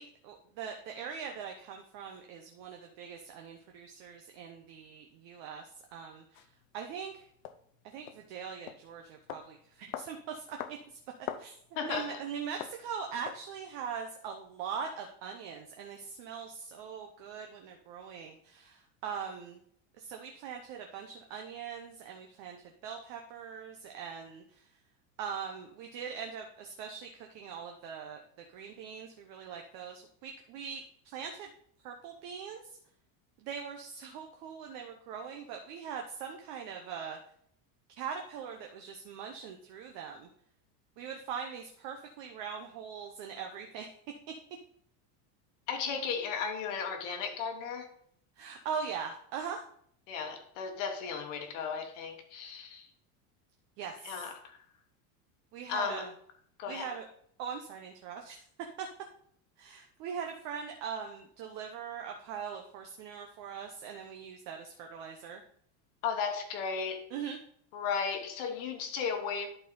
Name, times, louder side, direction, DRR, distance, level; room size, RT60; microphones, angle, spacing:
voice 1, 0.0-6.5 6.7-7.3 7.8-11.0 11.4-11.5 11.8-19.6 20.0-24.7 25.2-28.2 28.5-31.5 31.8-32.8 33.4-37.2 38.0-40.3 41.0-43.9 48.4-49.6 53.8-54.3 55.5-56.1 56.7-57.0 57.4-58.4 58.8-58.9 59.6-65.4 67.1-67.4, right 7 dB, 40° right, 0.8 m, -41 dB
sound 1, 6.3-6.5 7.4-7.6 8.1-8.2 8.7-8.8 9.3-9.5 9.9-10.1 10.6-10.8 11.1-11.5 11.9-12.1 12.6-12.8 13.3-13.4, left 11 dB, 80° left, 0.8 m, -40 dB
voice 2, 11.7-12.2 45.7-47.9 50.1-52.9 54.0-54.6 55.7-56.1 56.6-56.9 66.0-67.1 67.7-69.5, left 6 dB, 60° left, 1.4 m, -35 dB
11.0 x 4.3 x 3.8 m
cardioid pair, 175°, 42 cm